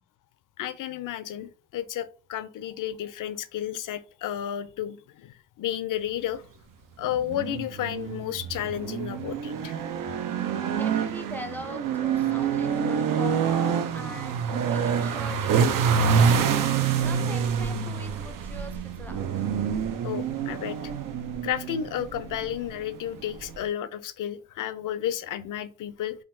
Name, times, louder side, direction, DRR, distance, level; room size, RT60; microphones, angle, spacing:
voice 1, 0.6-6.4 7.0-9.8 20.0-20.9 21.4-26.2, left 11 dB, 70° left, 13 dB, 0.5 m, -32 dB
sound 1, 7.0-23.7, right 7 dB, 75° right, 0.5 m, -27 dB
voice 2, 10.7-19.5, equal, 5° left, 6 dB, 0.5 m, -42 dB
3.6 x 2.3 x 2.6 m, 0.37 s
supercardioid pair, 50°, 33 cm